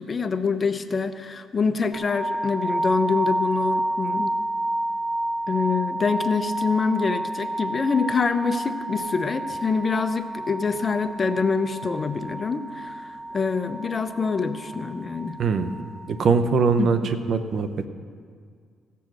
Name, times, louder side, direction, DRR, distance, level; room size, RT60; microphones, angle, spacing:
voice 1, 0.0-4.3 5.5-15.3 16.8-17.1, left 5 dB, 35° left, 9 dB, 0.7 m, -25 dB
sound 1, 1.9-16.0, right 1 dB, 5° right, 2.1 m, -30 dB
voice 2, 15.4-15.8 16.1-17.7, right 5 dB, 60° right, 10 dB, 0.8 m, -22 dB
16.5 x 7.0 x 6.2 m, 2.1 s
cardioid pair, 90°, 0 cm